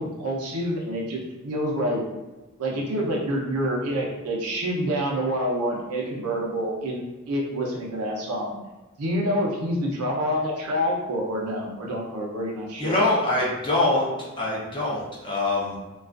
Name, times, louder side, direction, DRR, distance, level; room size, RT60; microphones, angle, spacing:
voice 1, 0.0-2.0 2.6-8.6 9.0-13.1, equal, 85° right, -2 dB, 0.6 m, -27 dB
voice 2, 12.8-14.1 14.4-15.8, left 2 dB, 20° left, -5 dB, 0.5 m, -24 dB
2.3 x 2.3 x 2.4 m, 1.1 s
head